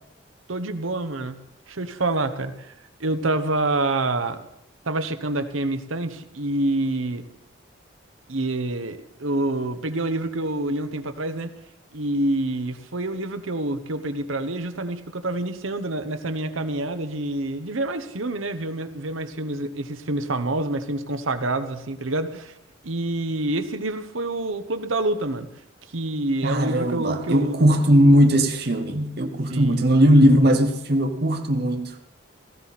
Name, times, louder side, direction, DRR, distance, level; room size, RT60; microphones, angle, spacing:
voice 1, 0.5-1.3 1.7-2.7 3.0-4.4 4.8-7.2 8.3-11.5 11.9-22.5 22.8-25.5 25.9-27.6 29.5-29.9, right 2 dB, 80° right, 1.1 m, -27 dB
voice 2, 26.4-31.9, equal, 50° right, 1.1 m, -18 dB
17.5 x 14.5 x 4.3 m
head